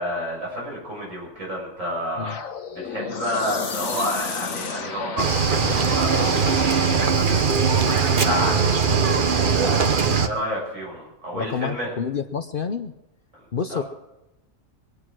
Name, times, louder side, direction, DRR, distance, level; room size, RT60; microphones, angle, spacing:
voice 1, 0.0-2.4 2.7-8.8 9.4-10.0 10.2-11.9 13.7-13.8, equal, 75° right, -4 dB, 7.6 m, -30 dB
sound 1, 2.2-7.3, left 6 dB, 80° left, 1.6 m, -33 dB
Cricket / Waves surf, 5.2-10.3, right 5 dB, 45° right, 1.0 m, -20 dB
voice 2, 11.3-12.9 13.5-13.8, left 6 dB, 50° left, 9 dB, 0.8 m, -28 dB
23.0 x 9.6 x 6.2 m, 0.93 s
omnidirectional pair, 1.4 m